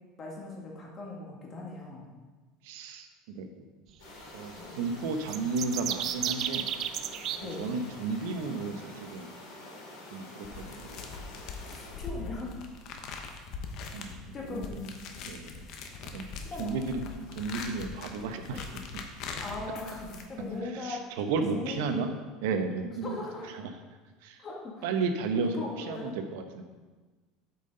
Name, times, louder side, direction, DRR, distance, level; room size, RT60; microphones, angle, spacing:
voice 1, 0.2-2.0 4.6-4.7 7.4-7.7 11.7-12.5 14.3-15.0 16.4-16.8 19.2-21.1 21.5-22.1 23.0-23.5 24.4-24.8 25.4-26.1, left 3 dB, 30° left, -2 dB, 2.0 m, -39 dB
voice 2, 2.6-3.6 4.3-6.7 7.6-9.3 10.1-10.9 13.9-14.7 15.2-15.6 16.1-16.3 16.6-19.0 20.6-22.1 22.4-23.7 24.2-24.4 24.8-26.6, right 4 dB, 80° right, 6 dB, 0.8 m, -33 dB
sound 1, 4.0-12.0, left 1 dB, 85° left, 2.4 m, -47 dB
sound 2, 5.2-7.4, right 10 dB, 50° right, 0.4 m, -32 dB
sound 3, 10.4-20.6, left 4 dB, 55° left, 0.9 m, -42 dB
8.1 x 5.5 x 3.8 m, 1.3 s
supercardioid pair, 125°, 0 cm